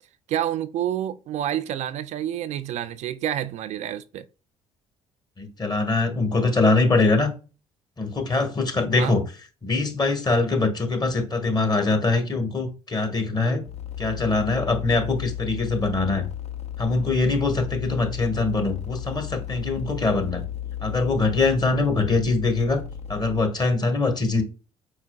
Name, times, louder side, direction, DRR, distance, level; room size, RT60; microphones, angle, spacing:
voice 1, 0.3-4.3 8.9-9.2, right 11 dB, 55° right, 0.4 m, -28 dB
voice 2, 5.4-7.3 8.0-9.2 9.6-13.6 14.0-16.2 16.8-20.4 20.8-22.8 23.1-24.4, left 3 dB, 30° left, 1.3 m, -23 dB
sound 1, 13.7-23.4, left 10 dB, 50° left, 0.7 m, -34 dB
4.7 x 4.4 x 2.2 m
hypercardioid pair, 55°, 14 cm